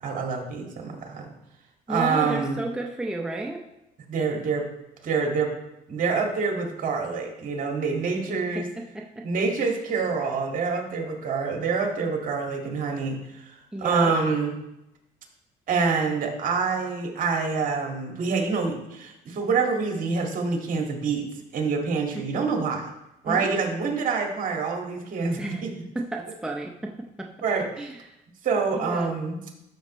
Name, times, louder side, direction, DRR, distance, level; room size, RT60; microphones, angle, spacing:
voice 1, 0.0-1.3 1.9-2.6 4.1-4.7 5.0-5.5 5.9-8.7 9.2-14.5 15.7-22.9 23.2-25.7 27.4-27.7 28.4-29.4, right 4 dB, 55° right, 1 dB, 2.0 m, -26 dB
voice 2, 1.9-3.6 8.3-8.4 8.8-9.3 13.7-14.1 22.1-22.2 23.3-23.4 25.4-25.6 25.9-27.3 27.8-28.0 28.7-29.1, right 2 dB, 5° right, 1 dB, 0.7 m, -32 dB
13.0 x 6.5 x 3.1 m, 0.90 s
cardioid pair, 110°, 17 cm